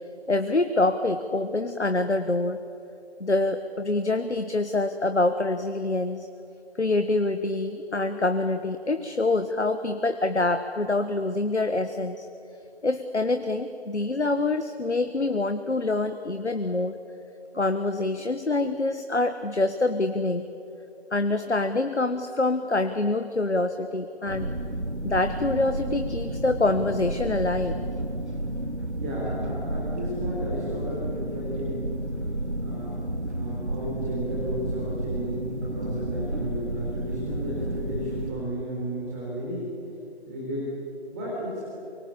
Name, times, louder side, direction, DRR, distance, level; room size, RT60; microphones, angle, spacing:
voice 1, 0.3-2.6 3.2-6.3 6.8-12.3 12.8-16.9 17.5-20.5 21.1-24.5 25.0-27.7, left 2 dB, 85° left, 9 dB, 1.5 m, -25 dB
sound 1, 24.3-38.3, right 1 dB, 90° right, 3.2 m, -31 dB
voice 2, 29.0-31.8 32.6-33.0 33.3-39.7 40.3-40.7 41.1-41.7, equal, 15° right, -6 dB, 4.0 m, -33 dB
25.0 x 23.5 x 8.5 m, 2.7 s
figure-of-eight pair, 160°, 33 cm